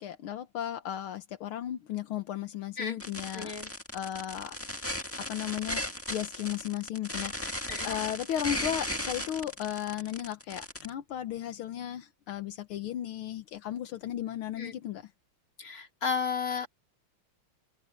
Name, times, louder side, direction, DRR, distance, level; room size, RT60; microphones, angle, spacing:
voice 1, 0.0-3.5 3.9-15.1, left 11 dB, 80° left, 1.8 m, -35 dB
sound 1, 3.0-10.9, left 1 dB, 5° left, 1.4 m, -36 dB
voice 2, 3.3-3.7 7.7-7.9 14.6-14.7 15.6-16.7, left 6 dB, 40° left, 3.3 m, -33 dB
open air
omnidirectional pair, 2.3 m